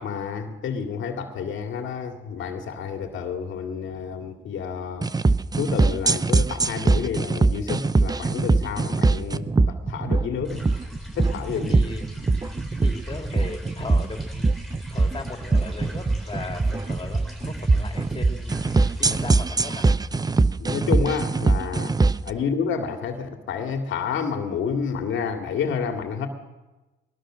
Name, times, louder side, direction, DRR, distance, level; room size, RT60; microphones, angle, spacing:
voice 1, 0.0-5.1 5.5-10.7 11.2-11.7 20.6-22.0 22.2-26.3, left 6 dB, 75° left, 5 dB, 2.5 m, -29 dB
sound 1, 5.0-22.3, right 3 dB, 20° right, 0.8 m, -22 dB
sound 2, 10.4-19.2, equal, ahead, 7.8 m, -38 dB
voice 2, 11.7-12.1 12.4-14.6 14.9-18.6 18.9-19.9, left 3 dB, 25° left, 4 dB, 3.5 m, -37 dB
22.0 x 20.5 x 6.4 m, 1.1 s
cardioid pair, 90°, 20 cm